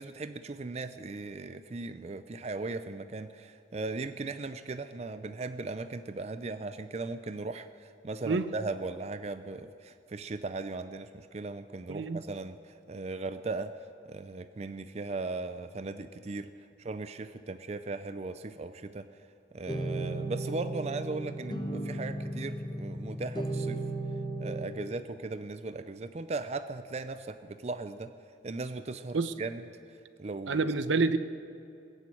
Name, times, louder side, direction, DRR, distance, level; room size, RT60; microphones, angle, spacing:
voice 1, 0.0-16.5 16.8-19.1 19.5-23.8 24.4-28.1 28.4-30.7, right 3 dB, 35° right, 11 dB, 0.4 m, -38 dB
voice 2, 11.9-12.2 29.1-29.3 30.5-31.2, right 3 dB, 85° right, 12 dB, 0.7 m, -27 dB
sound 1, 19.7-24.6, right 2 dB, 20° left, 1.1 m, -35 dB
21.0 x 7.5 x 8.6 m, 2.6 s
head